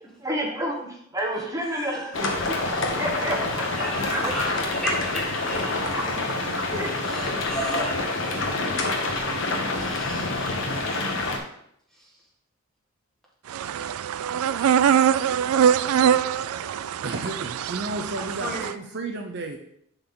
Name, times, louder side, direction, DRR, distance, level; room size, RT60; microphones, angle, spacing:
voice 1, 0.0-2.6 3.0-4.3 5.6-6.9, right 1 dB, 15° right, 0 dB, 1.4 m, -31 dB
voice 2, 1.6-2.1 3.8-5.8 7.0-8.1 9.2-9.3 9.7-10.5 10.9-11.2 14.6-14.7 18.2-18.7, equal, ahead, -5 dB, 1.8 m, -34 dB
sound 1, 2.1-11.4, left 2 dB, 60° left, 1.3 m, -27 dB
sound 2, 13.5-18.7, right 8 dB, 80° right, 0.3 m, -23 dB
voice 3, 17.0-19.6, right 2 dB, 50° right, 3 dB, 0.7 m, -32 dB
11.0 x 4.1 x 3.8 m, 0.71 s
head